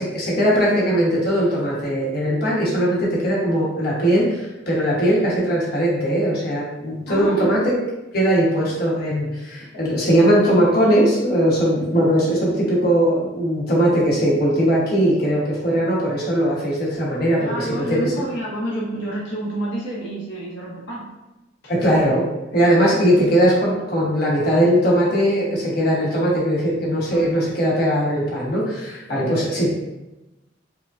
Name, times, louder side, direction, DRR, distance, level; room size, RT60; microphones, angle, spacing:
voice 1, 0.1-7.6 8.1-18.1 21.7-22.2 22.5-29.7, equal, 55° left, -6 dB, 1.1 m, -19 dB
voice 2, 7.1-7.6 17.4-21.1 27.1-27.4 29.1-29.4, right 1 dB, 85° left, -7 dB, 1.0 m, -29 dB
4.8 x 2.2 x 2.5 m, 0.98 s
head